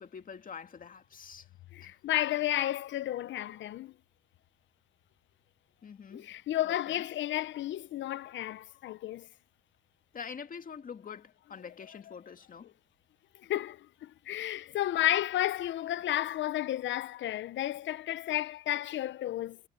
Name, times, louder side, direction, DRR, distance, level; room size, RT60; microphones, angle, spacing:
voice 1, 0.0-1.5 1.8-1.9 5.8-6.3 6.6-7.1 10.1-12.7, left 6 dB, 45° left, 2.1 m, -45 dB
voice 2, 1.7-3.9 6.1-9.3 13.3-19.6, left 13 dB, 70° left, 0.7 m, -32 dB
cardioid pair, 90°, 20 cm